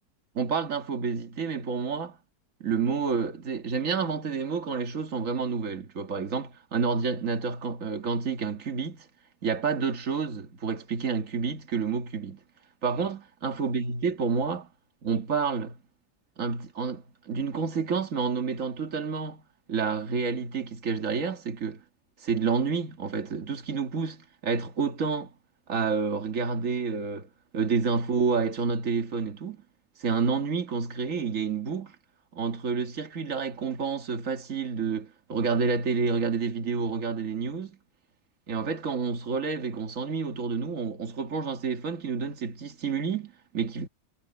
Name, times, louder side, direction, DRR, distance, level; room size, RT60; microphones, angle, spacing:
voice 1, 0.3-2.2 2.6-9.1 9.4-12.4 12.8-14.7 15.0-15.8 16.4-19.4 19.7-21.8 22.2-25.3 25.7-29.6 30.0-32.0 32.3-37.8 38.5-43.9, right 5 dB, 50° right, 2.2 m, -29 dB
omnidirectional pair, 1.8 m